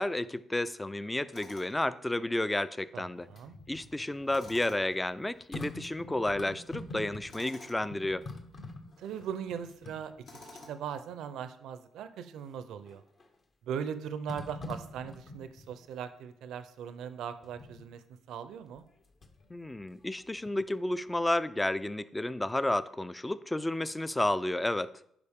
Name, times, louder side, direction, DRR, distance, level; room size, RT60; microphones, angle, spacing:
voice 1, 0.0-3.3 3.7-8.2 19.5-24.9, left 1 dB, 10° left, 16 dB, 0.3 m, -31 dB
Tools, 1.3-1.9 4.3-5.0 7.3-7.8 10.2-10.9, left 2 dB, 70° left, 1.8 m, -50 dB
voice 2, 2.9-3.6 9.0-10.1 10.7-13.0 13.6-18.0 18.3-18.9, right 8 dB, 80° right, 11 dB, 0.5 m, -39 dB
sound 1, 3.2-7.5 7.8-10.6 11.1-11.2 12.9-13.3 14.3-15.8 17.4-17.8 18.8-19.5 19.9-20.9 21.1-21.2, left 2 dB, 50° left, 1.1 m, -46 dB
11.0 x 4.9 x 3.6 m, 0.72 s
cardioid pair, 90°, 0 cm